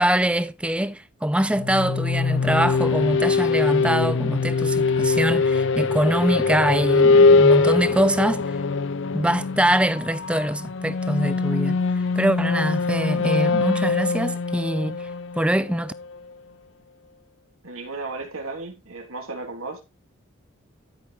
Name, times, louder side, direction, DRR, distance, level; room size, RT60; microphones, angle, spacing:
voice 1, 0.0-8.5 9.1-11.8 12.2-15.1 15.3-15.9, right 1 dB, 5° right, 0.4 m, -23 dB
sound 1, 1.5-16.2, left 4 dB, 60° left, 0.5 m, -22 dB
voice 2, 17.6-19.8, right 3 dB, 90° right, 3.0 m, -34 dB
13.0 x 6.1 x 3.5 m
head